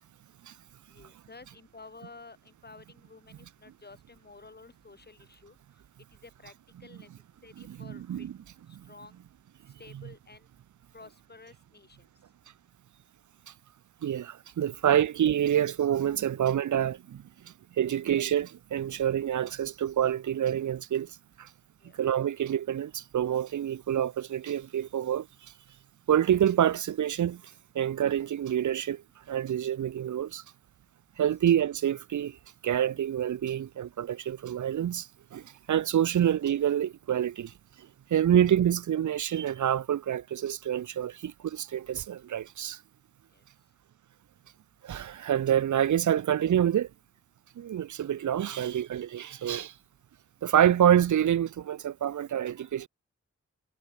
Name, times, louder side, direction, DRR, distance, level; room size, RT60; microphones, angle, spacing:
voice 1, 0.9-5.6 6.2-6.5 6.8-7.1 7.4-8.3 8.9-9.1 9.8-10.5 10.9-12.0 17.8-18.0 21.8-22.0 43.3-43.4 48.5-48.8, left 3 dB, 30° left, 1.2 m, -52 dB
voice 2, 7.7-8.3 8.7-8.9 14.0-21.5 22.0-25.3 26.1-27.4 27.7-30.4 31.2-32.4 32.6-37.5 37.8-42.8 44.8-46.9 47.6-49.7 50.4-52.9, right 10 dB, 70° right, 0.5 m, -27 dB
wide cardioid pair, 85°, 31 cm